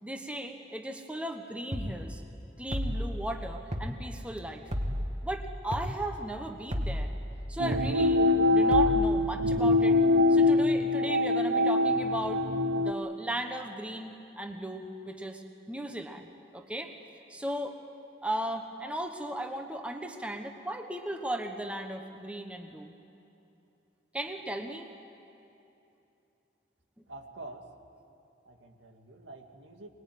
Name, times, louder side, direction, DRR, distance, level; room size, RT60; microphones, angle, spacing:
voice 1, 0.0-2.2 2.6-4.6 5.2-7.1 7.5-10.0 10.3-12.4 12.8-16.3 16.5-16.9 17.3-17.8 18.2-22.9 24.1-24.9, right 1 dB, 5° right, 5 dB, 1.2 m, -36 dB
sound 1, 1.7-1.9 2.7-3.1 3.7-3.9 4.7-5.1 5.7-5.9 6.7-7.1 7.7-7.9 8.7-9.1, equal, 35° right, 2.0 m, -31 dB
sound 2, 7.6-12.9, left 2 dB, 65° right, 0.7 m, -24 dB
voice 2, 27.1-27.6 28.5-29.9, right 2 dB, 90° right, 4 dB, 2.2 m, -46 dB
24.0 x 21.0 x 9.4 m, 2.9 s
head